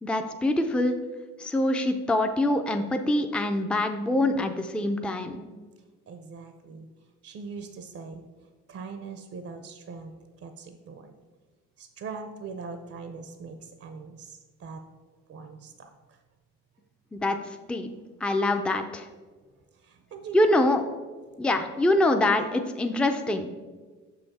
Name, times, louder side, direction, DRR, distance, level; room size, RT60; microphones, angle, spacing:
voice 1, 0.0-0.9 1.4-5.4 17.1-17.4 17.7-17.9 18.2-19.1 20.3-20.8 21.4-23.5, left 1 dB, 5° left, 6 dB, 0.4 m, -24 dB
voice 2, 6.1-6.9 7.2-8.3 8.7-11.1 11.8-14.8 15.3-16.2 19.7-20.7 21.4-21.5 22.4-22.5, right 4 dB, 50° right, 7 dB, 0.6 m, -41 dB
6.4 x 5.6 x 4.1 m, 1.4 s
cardioid pair, 90°, 30 cm